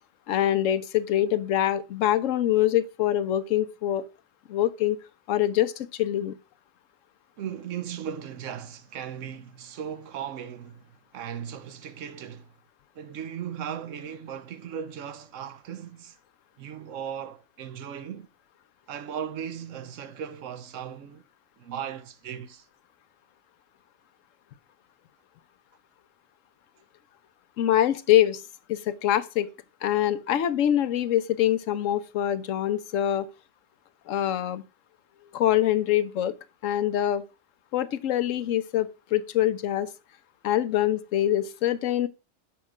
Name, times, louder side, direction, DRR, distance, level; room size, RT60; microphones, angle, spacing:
voice 1, 0.3-4.0 4.5-5.0 5.3-6.3 27.6-28.4 28.7-29.5 29.8-33.3 34.1-34.6 35.3-36.3 36.6-37.2 37.7-39.9 40.4-42.1, left 12 dB, 85° left, 1.0 m, -24 dB
voice 2, 7.4-12.5 12.9-16.2 16.6-18.3 18.9-21.2 21.6-22.7, right 8 dB, 75° right, 1.1 m, -37 dB
7.3 x 5.4 x 4.9 m
omnidirectional pair, 1.3 m